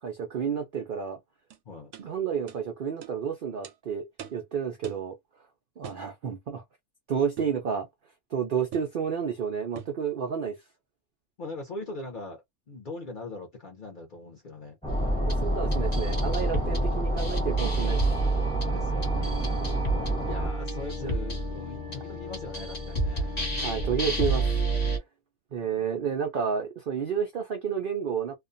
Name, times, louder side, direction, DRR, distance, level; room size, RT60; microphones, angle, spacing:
voice 1, 0.0-1.2 2.0-4.0 4.3-5.2 5.8-6.6 7.1-7.9 8.3-10.6 15.2-18.1 21.0-21.1 23.6-24.5 25.5-28.3, right 7 dB, 85° right, 0.4 m, -30 dB
sound 1, 1.5-1.6 1.9-2.1 2.5-2.6 3.0-3.2 3.6-3.8 4.2-4.4 4.8-5.1 5.8-6.1 7.4-7.6 8.7-9.0 9.8-10.0, right 9 dB, 65° right, 0.8 m, -43 dB
voice 2, 11.4-14.8 18.7-19.4 20.3-23.4, left 2 dB, 50° left, 0.6 m, -41 dB
sound 2, 14.8-20.5, right 1 dB, 5° left, 0.7 m, -32 dB
sound 3, 14.9-25.0, right 2 dB, 30° left, 1.0 m, -28 dB
2.4 x 2.2 x 2.5 m
omnidirectional pair, 1.6 m